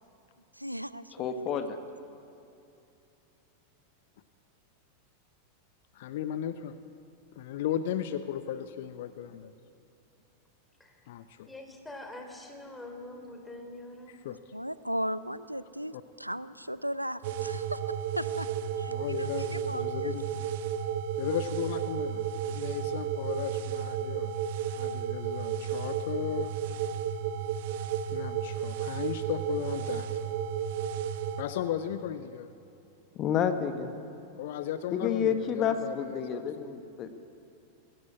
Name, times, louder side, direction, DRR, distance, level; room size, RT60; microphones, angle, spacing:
voice 1, 0.6-1.5 14.5-18.5 18.8-20.1, equal, 90° right, 16 dB, 0.5 m, -37 dB
voice 2, 1.2-1.8 33.1-33.9 34.9-37.1, left 8 dB, 35° left, 8 dB, 1.4 m, -29 dB
voice 3, 5.9-6.7 7.4-9.5 11.1-11.5 14.1-14.4 15.9-16.0 18.9-20.4 21.2-24.3 24.8-26.5 28.1-30.3 31.4-32.5 34.4-36.4, left 10 dB, 55° left, 12 dB, 0.8 m, -36 dB
voice 4, 11.5-14.2, left 1 dB, 5° left, 4 dB, 3.4 m, -44 dB
sound 1, 17.2-31.4, right 8 dB, 50° right, 1.1 m, -33 dB
20.5 x 16.0 x 8.5 m, 2.7 s
figure-of-eight pair, 90°, 0 cm